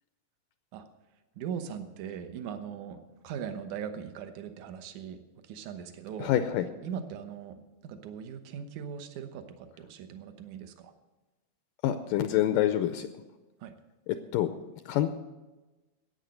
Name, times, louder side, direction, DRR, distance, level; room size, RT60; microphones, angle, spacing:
voice 1, 1.4-5.2 5.5-6.3 6.8-10.9 13.6-13.7, right 8 dB, 65° right, 8 dB, 2.1 m, -40 dB
voice 2, 6.2-6.7 11.8-13.1 14.1-14.5 14.9-15.2, left 12 dB, 80° left, 9 dB, 2.0 m, -26 dB
13.0 x 9.1 x 7.7 m, 1.1 s
omnidirectional pair, 4.3 m